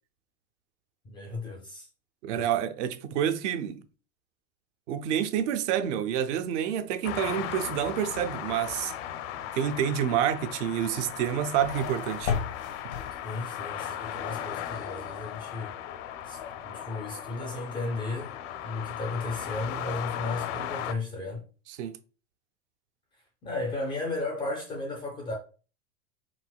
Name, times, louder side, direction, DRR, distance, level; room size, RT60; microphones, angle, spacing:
voice 1, 1.0-1.9 2.3-2.5 13.2-15.8 16.2-18.4 18.6-21.4 23.4-25.3, left 2 dB, 15° left, 0.3 m, -34 dB
voice 2, 2.2-3.8 4.9-8.9 9.5-12.3 21.8-21.9, right 9 dB, 60° right, 0.6 m, -28 dB
sound 1, 7.0-20.9, left 10 dB, 60° left, 0.6 m, -37 dB
sound 2, 11.0-13.7, left 6 dB, 90° left, 1.0 m, -35 dB
4.7 x 3.6 x 2.3 m
supercardioid pair, 145°, 41 cm